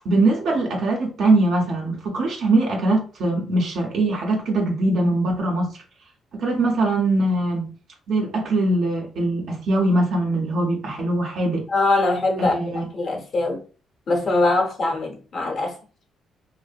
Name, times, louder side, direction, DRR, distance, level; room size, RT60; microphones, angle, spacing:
voice 1, 0.0-5.8 6.3-7.7 8.1-11.7 12.4-12.9, right 2 dB, 70° right, 0.6 m, -22 dB
voice 2, 11.7-13.6 14.1-15.8, left 2 dB, 50° left, 0.8 m, -22 dB
2.6 x 2.0 x 2.4 m
cardioid pair, 90°, 0 cm